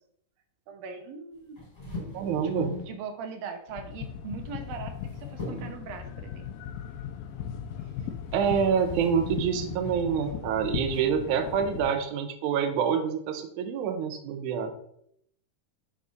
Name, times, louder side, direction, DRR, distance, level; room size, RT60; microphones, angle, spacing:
voice 1, 0.7-1.6 1.9-2.0 2.6-6.5 7.8-8.1, right 5 dB, 90° right, 5 dB, 2.8 m, -41 dB
sound 1, 1.6-3.0 4.4-5.1 5.4-5.9 7.9-8.0 8.4-10.1 10.9-11.2, left 1 dB, 20° left, 3.0 m, -39 dB
voice 2, 2.1-2.8 8.3-14.7, right 7 dB, 70° right, 5 dB, 2.1 m, -27 dB
sound 2, 3.7-11.9, left 8 dB, 80° left, 2.3 m, -38 dB
6.6 x 4.8 x 5.2 m, 0.70 s
omnidirectional pair, 4.0 m